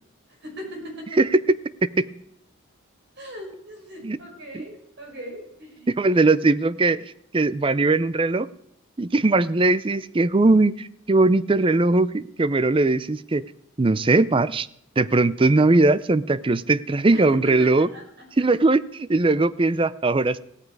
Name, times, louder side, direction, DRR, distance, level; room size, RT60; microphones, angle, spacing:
voice 1, 0.4-1.2 3.2-5.9 17.1-18.0 18.4-18.5, equal, 55° right, 1 dB, 5.5 m, -39 dB
voice 2, 1.2-1.6 2.0-2.1 4.0-4.2 4.5-4.6 5.9-7.0 7.3-8.5 9.0-13.4 13.8-14.7 15.0-17.9 18.4-20.4, right 2 dB, 25° right, 17 dB, 0.5 m, -20 dB
16.5 x 14.0 x 4.7 m, 0.74 s
head